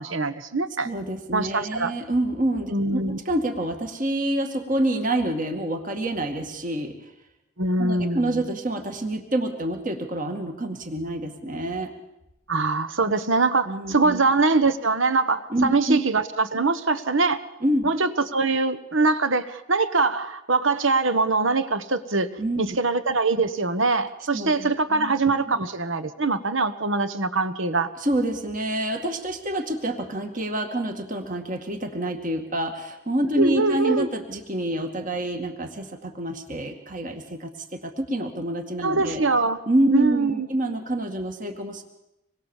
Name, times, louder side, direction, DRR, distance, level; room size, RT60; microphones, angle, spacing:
voice 1, 0.0-0.9 1.3-1.9 2.7-3.2 7.6-8.4 12.5-17.4 17.8-27.9 33.4-34.1 38.8-39.6 39.9-40.5, right 3 dB, 60° right, 12 dB, 1.3 m, -23 dB
voice 2, 0.8-7.0 7.8-11.9 13.7-14.2 15.5-16.0 17.6-17.9 22.4-22.8 24.3-25.1 25.5-25.6 28.0-39.2 39.7-41.8, right 1 dB, 40° right, 5 dB, 2.2 m, -27 dB
26.5 x 21.5 x 7.4 m, 0.90 s
head